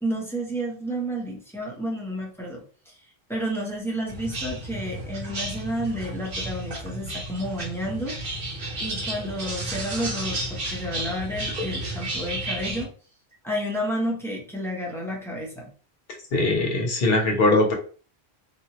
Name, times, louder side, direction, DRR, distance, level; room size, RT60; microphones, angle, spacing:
voice 1, 0.0-2.9 3.3-8.2 8.5-12.9 13.4-15.7, equal, 5° left, -2 dB, 0.7 m, -31 dB
sound 1, 4.1-12.8, right 1 dB, 60° right, 1.0 m, -32 dB
voice 2, 16.3-17.7, left 2 dB, 60° left, 1 dB, 1.1 m, -21 dB
3.0 x 2.4 x 2.8 m, 0.39 s
omnidirectional pair, 1.1 m